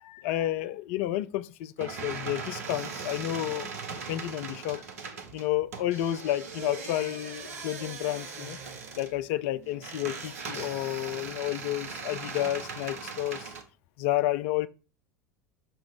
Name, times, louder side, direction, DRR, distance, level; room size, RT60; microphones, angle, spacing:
voice 1, 0.0-4.8 5.3-8.6 9.0-13.5 14.0-14.7, left 14 dB, 50° left, 0.4 m, -31 dB
sound 1, 1.8-13.6, right 5 dB, 65° right, 0.9 m, -39 dB
5.8 x 4.4 x 4.4 m
figure-of-eight pair, 75°, 9 cm